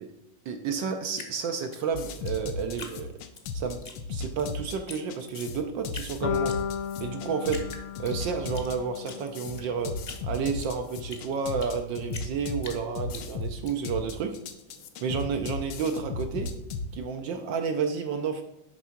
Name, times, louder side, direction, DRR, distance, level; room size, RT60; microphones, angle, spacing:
voice 1, 0.5-3.1 3.5-3.8 4.1-6.5 7.0-7.6 8.0-9.9 10.2-14.4 15.0-16.5 16.9-18.4, right 6 dB, 70° right, 5 dB, 1.4 m, -31 dB
Drip, 1.1-3.4 3.8-4.5 4.9-5.0 5.3-6.1 6.5-7.1 7.5-8.7 9.0-11.8 12.1-13.7, left 4 dB, 40° left, 1.0 m, -43 dB
sound 1, 1.9-16.9, left 3 dB, 70° left, 1.4 m, -36 dB
sound 2, 6.2-10.3, left 9 dB, 90° left, 1.6 m, -35 dB
11.0 x 3.6 x 5.8 m, 0.87 s
omnidirectional pair, 2.3 m